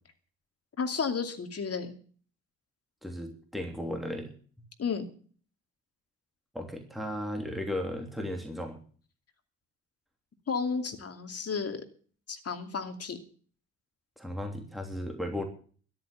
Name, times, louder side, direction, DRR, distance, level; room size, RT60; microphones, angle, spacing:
voice 1, 0.8-1.9 4.8-5.0 10.5-11.8 12.3-13.2, left 5 dB, 40° left, 7 dB, 2.6 m, -32 dB
voice 2, 3.0-4.3 6.5-8.8 14.2-15.4, left 1 dB, ahead, 3 dB, 3.1 m, -35 dB
13.5 x 10.5 x 7.3 m, 0.44 s
figure-of-eight pair, 50°, 39 cm